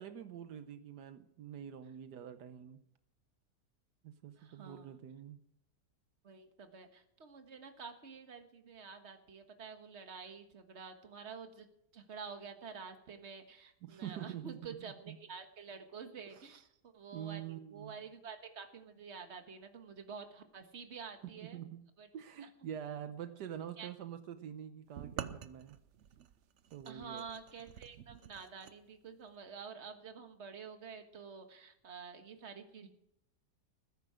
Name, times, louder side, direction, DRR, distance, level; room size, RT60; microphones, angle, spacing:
voice 1, 0.0-2.8 4.0-5.4 13.8-15.2 16.3-16.6 17.1-18.0 21.2-21.8 22.1-25.8 26.7-27.3, right 9 dB, 80° right, 9 dB, 1.4 m, -46 dB
voice 2, 4.4-5.0 6.2-11.7 11.9-21.6 22.0-22.1 22.4-22.5 23.8-23.9 26.9-32.9, right 5 dB, 45° right, 6 dB, 1.7 m, -49 dB
sound 1, 25.0-28.8, right 9 dB, 60° right, 0.8 m, -48 dB
20.0 x 10.0 x 5.0 m, 0.76 s
omnidirectional pair, 1.8 m